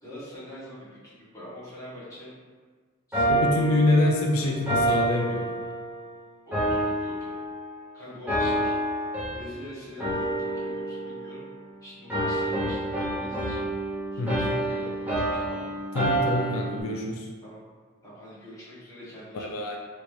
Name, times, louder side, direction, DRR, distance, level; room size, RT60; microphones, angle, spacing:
voice 1, 0.0-2.3 3.1-3.9 4.2-4.5 6.5-7.4 7.9-8.7 9.3-11.5 11.8-13.7 14.1-15.7 17.4-17.6 18.0-19.7, left 1 dB, 15° left, -11 dB, 1.3 m, -43 dB
sound 1, 3.1-6.1 6.5-7.9 8.3-9.7 10.0-11.7 12.1-16.8, right 1 dB, 10° right, 0.6 m, -28 dB
voice 2, 3.3-5.6 14.2-14.5 15.9-17.3 19.3-19.8, left 2 dB, 85° left, 0 dB, 0.4 m, -25 dB
3.2 x 2.6 x 3.0 m, 1.5 s
head